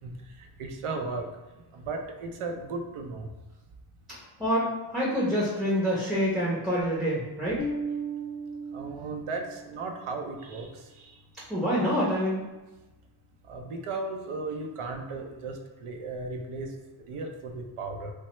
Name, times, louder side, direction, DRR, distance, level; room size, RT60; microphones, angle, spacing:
voice 1, 0.0-1.3 1.7-3.3 8.7-11.1 13.5-16.7 17.1-18.1, right 3 dB, 85° right, 4 dB, 0.6 m, -36 dB
voice 2, 4.1-7.6 11.5-12.4, equal, ahead, -7 dB, 0.5 m, -27 dB
Bass guitar, 7.6-10.0, right 2 dB, 85° left, 0.7 m, -36 dB
3.1 x 2.1 x 2.9 m, 1.1 s
wide cardioid pair, 95°, 50 cm